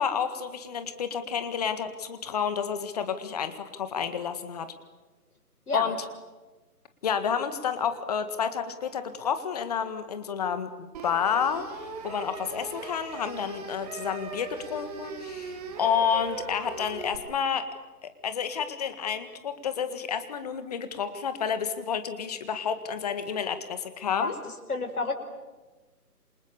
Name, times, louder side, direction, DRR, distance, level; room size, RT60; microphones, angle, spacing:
voice 1, 0.0-4.7 5.7-6.0 7.0-17.7 18.0-24.3, left 7 dB, 25° left, 10 dB, 1.8 m, -30 dB
sound 1, 10.9-17.2, right 4 dB, 25° right, 3.2 m, -40 dB
voice 2, 24.7-25.1, left 3 dB, 70° left, 4 dB, 5.8 m, -28 dB
28.0 x 27.0 x 7.0 m, 1.2 s
figure-of-eight pair, 155°, 47 cm